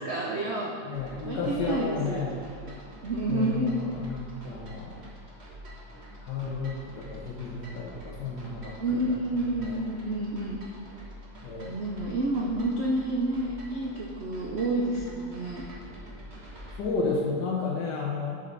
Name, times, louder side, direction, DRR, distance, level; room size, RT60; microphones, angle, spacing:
voice 1, 0.0-0.7 1.2-2.3 3.0-3.8 8.8-10.6 11.6-15.7, right 1 dB, 60° right, -2 dB, 0.7 m, -29 dB
voice 2, 0.8-2.3 3.3-4.9 6.2-9.2 9.6-9.8 11.4-11.7 16.8-18.4, left 4 dB, 70° left, -4 dB, 1.5 m, -32 dB
sound 1, 0.9-16.8, equal, 40° right, 1.5 m, -46 dB
11.0 x 5.5 x 4.0 m, 2.3 s
omnidirectional pair, 2.0 m